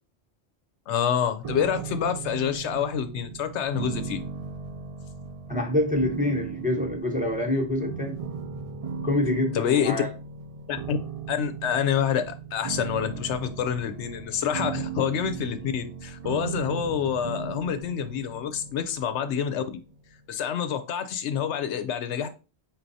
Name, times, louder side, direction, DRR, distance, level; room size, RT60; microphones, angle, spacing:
voice 1, 0.9-4.2 9.5-10.0 10.7-11.0 11.3-19.6 20.3-22.3, left 8 dB, 75° left, 0.9 m, -27 dB
sound 1, 1.4-20.4, right 6 dB, 65° right, 0.3 m, -37 dB
voice 2, 5.5-8.2 9.0-10.1, left 1 dB, 10° right, 0.7 m, -26 dB
4.5 x 4.0 x 2.7 m
omnidirectional pair, 1.2 m